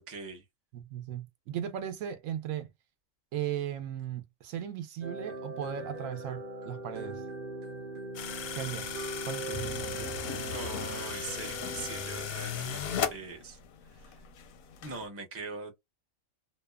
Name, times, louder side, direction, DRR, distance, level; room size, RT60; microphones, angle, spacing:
voice 1, 0.1-0.4 10.5-13.6 13.9-14.1 14.8-15.8, right 4 dB, 15° right, 0.5 m, -41 dB
voice 2, 0.7-2.7 3.3-7.2 8.6-8.9 9.3-10.6, right 10 dB, 75° right, 1.0 m, -37 dB
sound 1, 5.0-12.3, right 2 dB, 50° right, 0.8 m, -40 dB
sound 2, 8.1-13.1, left 8 dB, 65° left, 0.6 m, -36 dB
sound 3, 9.5-15.1, left 6 dB, 90° left, 1.0 m, -45 dB
2.8 x 2.1 x 2.2 m
omnidirectional pair, 1.4 m